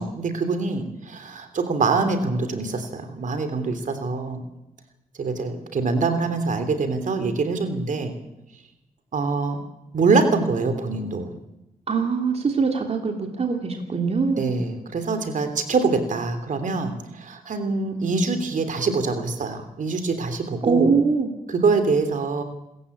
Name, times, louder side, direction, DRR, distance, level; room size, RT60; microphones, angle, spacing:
voice 1, 0.0-4.4 5.2-8.1 9.1-9.6 9.9-11.3 14.4-20.9 21.5-22.4, right 4 dB, 65° right, 8 dB, 3.2 m, -24 dB
voice 2, 11.9-14.5 20.6-21.3, right 5 dB, 45° right, 4 dB, 2.8 m, -23 dB
28.0 x 14.5 x 8.6 m, 0.93 s
cardioid pair, 85°, 14 cm